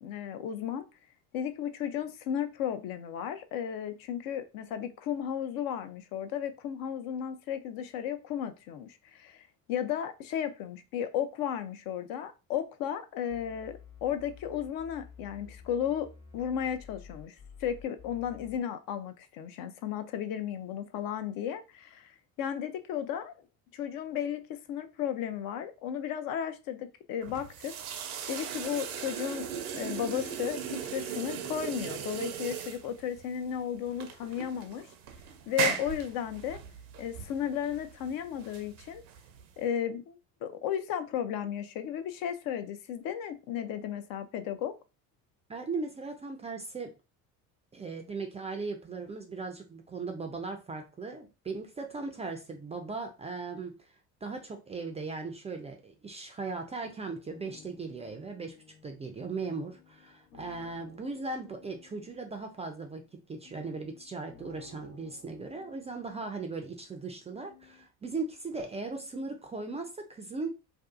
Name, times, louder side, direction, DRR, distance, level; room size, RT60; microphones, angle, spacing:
voice 1, 0.0-0.9 1.3-16.1 16.3-23.3 23.7-27.7 28.3-29.5 29.7-34.9 35.5-36.6 37.0-39.0 39.6-44.7, left 9 dB, 55° left, 0.5 m, -34 dB
sound 1, 13.3-18.6, left 7 dB, 35° left, 1.0 m, -51 dB
sound 2, 27.2-39.6, right 7 dB, 75° right, 0.6 m, -38 dB
voice 2, 45.5-46.9 47.7-53.9 54.2-70.5, right 3 dB, 15° right, 0.3 m, -38 dB
sound 3, 57.3-67.8, left 5 dB, 90° left, 0.9 m, -57 dB
2.6 x 2.4 x 2.3 m
hypercardioid pair, 70°, 42 cm